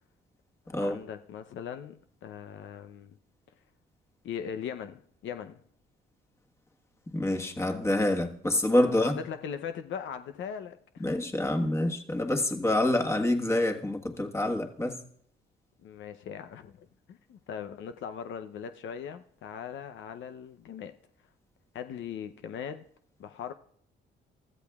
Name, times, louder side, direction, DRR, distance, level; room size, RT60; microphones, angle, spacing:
voice 1, 0.8-3.2 4.2-5.6 8.8-11.1 15.8-21.0 21.7-22.8 23.2-23.5, left 8 dB, 70° left, 0.7 m, -40 dB
voice 2, 7.1-9.2 11.0-15.0, left 1 dB, 15° left, 1.4 m, -27 dB
29.0 x 13.5 x 2.4 m
cardioid pair, 90°, 20 cm